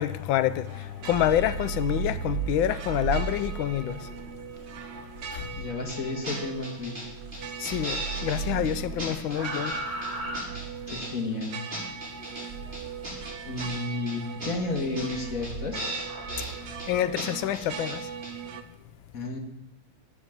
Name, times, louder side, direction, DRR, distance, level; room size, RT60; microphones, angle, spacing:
voice 1, 0.0-4.1 5.3-5.6 7.6-9.8 16.9-18.1, left 11 dB, 80° left, 1.4 m, -27 dB
sound 1, 0.7-18.6, right 7 dB, 75° right, 0.6 m, -41 dB
sound 2, 1.0-7.4 7.7-11.1 12.5-13.7 14.4-17.0, right 4 dB, 45° right, 3.3 m, -36 dB
voice 2, 5.6-7.0 10.9-11.6 13.5-15.8 19.1-19.4, left 3 dB, 45° left, 1.8 m, -32 dB
sound 3, 5.9-6.0 6.2-6.4 6.6-7.0 7.3-8.4 8.7-8.8 9.0-9.8 10.0-11.1 11.4-12.4 12.7-13.8 14.1-14.2 14.4-14.5 14.8-15.2 15.4-15.5 15.8-16.5 16.8-16.9 17.2-17.3 17.5-18.0 18.2-18.3, right 1 dB, 25° right, 5.8 m, -36 dB
11.0 x 7.0 x 7.2 m
omnidirectional pair, 2.1 m